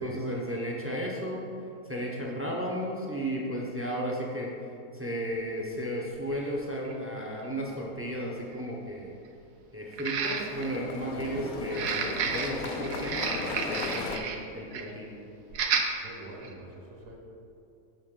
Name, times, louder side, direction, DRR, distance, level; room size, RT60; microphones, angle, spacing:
voice 1, 0.0-1.5 1.8-4.5 4.9-9.2 9.7-15.2, equal, 15° right, -3 dB, 0.5 m, -34 dB
sound 1, 5.2-5.3 6.3-6.4 6.8-6.9 9.9-10.8 11.6-14.4 14.7-14.9 15.5-15.9 16.4-16.5, right 6 dB, 75° right, 1.2 m, -31 dB
sound 2, 6.2-6.7 9.9-14.2, left 5 dB, 70° left, 1.0 m, -37 dB
voice 2, 16.0-17.2, right 2 dB, 55° right, -1 dB, 1.3 m, -42 dB
7.5 x 6.3 x 3.7 m, 2.6 s
omnidirectional pair, 1.7 m